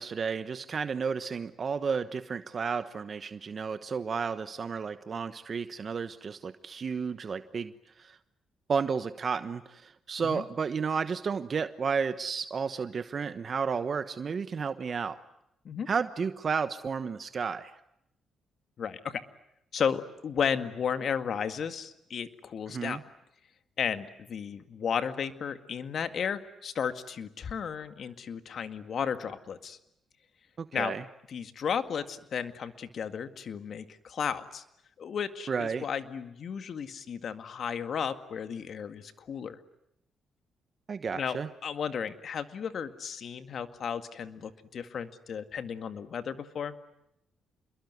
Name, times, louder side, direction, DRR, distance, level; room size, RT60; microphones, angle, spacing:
voice 1, 0.0-7.7 8.0-8.2 8.7-15.2 15.9-17.7 22.7-23.0 30.6-31.0 35.5-35.8 40.9-41.5, right 5 dB, 50° right, 11 dB, 1.1 m, -32 dB
voice 2, 18.8-19.2 19.7-23.0 23.8-29.8 30.7-31.0 31.3-34.6 35.0-39.6 41.1-46.8, left 7 dB, 65° left, 9 dB, 2.0 m, -34 dB
28.0 x 22.0 x 9.5 m, 0.80 s
supercardioid pair, 60°, 0 cm